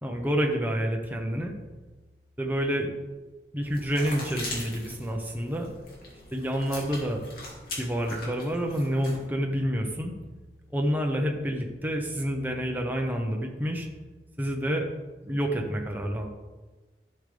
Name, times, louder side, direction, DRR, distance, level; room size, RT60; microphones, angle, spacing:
voice 1, 0.0-1.5 2.4-2.9 3.5-5.7 6.3-7.2 7.8-10.1 10.7-13.9 14.4-14.9 15.2-16.3, equal, 10° right, 1 dB, 1.0 m, -28 dB
sound 1, 3.6-9.3, left 2 dB, 55° left, 2.5 m, -41 dB
12.0 x 6.7 x 3.4 m, 1.2 s
head